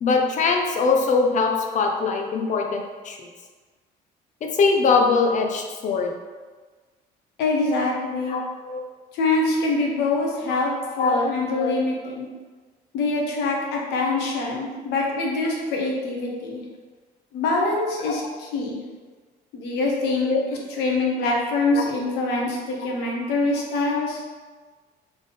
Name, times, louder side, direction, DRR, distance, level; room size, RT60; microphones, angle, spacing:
voice 1, 0.0-3.3 4.4-6.1 8.3-8.8 11.0-11.2 11.6-11.7 18.1-18.2 20.3-20.4 21.7-21.8, left 4 dB, 45° left, 2 dB, 0.7 m, -22 dB
voice 2, 7.4-8.4 9.1-12.3 12.9-16.6 17.3-18.8 19.5-24.2, left 2 dB, 85° left, -1 dB, 1.0 m, -24 dB
3.6 x 3.6 x 3.8 m, 1.4 s
cardioid pair, 110°, 17 cm